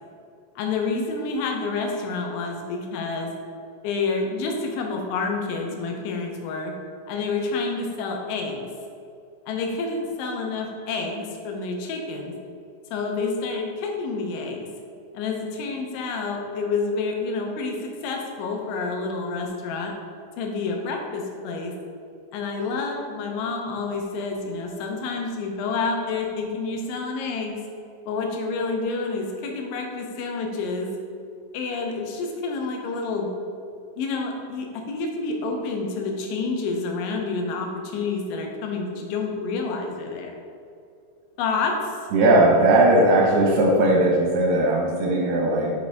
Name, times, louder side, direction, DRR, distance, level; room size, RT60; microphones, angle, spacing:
voice 1, 0.6-3.3 3.8-6.8 7.1-8.6 9.5-12.4 12.9-14.7 15.1-19.9 20.4-21.8 22.3-27.6 28.1-30.9 31.5-33.3 34.0-40.3 41.4-42.0, left 4 dB, 85° left, 2 dB, 3.3 m, -28 dB
voice 2, 42.1-45.7, right 1 dB, 70° right, -1 dB, 2.6 m, -18 dB
8.6 x 6.3 x 3.5 m, 2.4 s
omnidirectional pair, 5.2 m